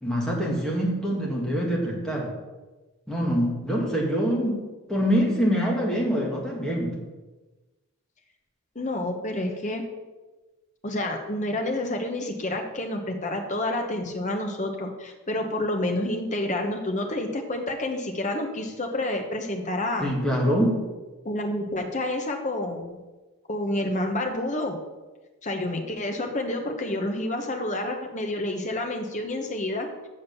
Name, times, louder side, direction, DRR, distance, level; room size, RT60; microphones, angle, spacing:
voice 1, 0.0-2.3 3.1-4.6 4.9-6.9 20.0-20.8, equal, 5° left, -3 dB, 1.8 m, -25 dB
voice 2, 8.7-9.8 10.8-20.1 21.2-23.0 23.5-24.8 25.4-29.9, left 1 dB, 35° left, 3 dB, 1.1 m, -29 dB
7.2 x 6.5 x 6.8 m, 1.2 s
head